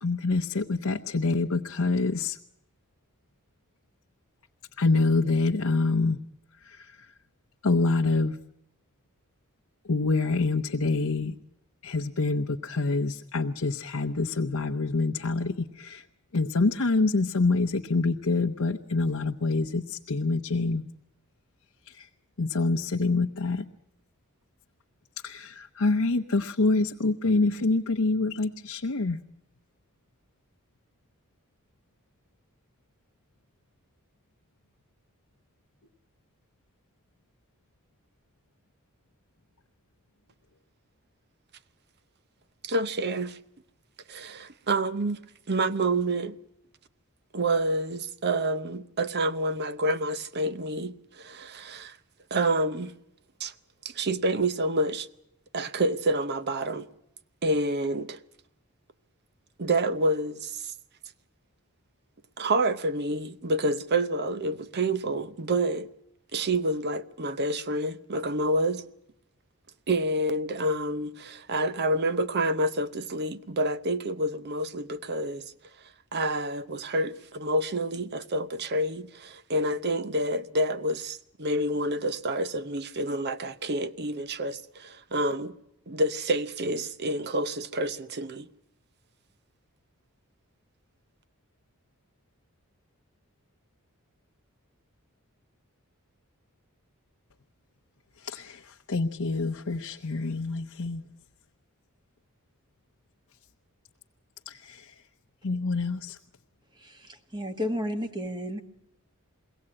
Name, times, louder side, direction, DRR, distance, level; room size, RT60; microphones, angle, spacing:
voice 1, 0.0-2.4 4.8-6.2 6.6-6.9 7.6-8.4 9.9-11.3 11.8-16.0 16.3-20.8 21.9-22.1 22.4-23.6 25.2-29.2 98.2-101.0 104.5-104.9 105.4-106.2, left 3 dB, 70° left, 0.8 m, -26 dB
voice 2, 42.6-43.4 44.1-45.2 45.5-46.4 47.3-52.0 52.3-52.9 53.4-53.5 53.8-55.1 55.5-56.9 57.4-58.2 59.6-60.7 62.4-65.9 66.3-68.8 69.9-75.4 76.1-85.5 85.9-88.5, right 1 dB, 50° right, 0.8 m, -28 dB
voice 3, 107.3-108.6, equal, 20° right, 1.4 m, -31 dB
22.5 x 17.0 x 8.7 m
head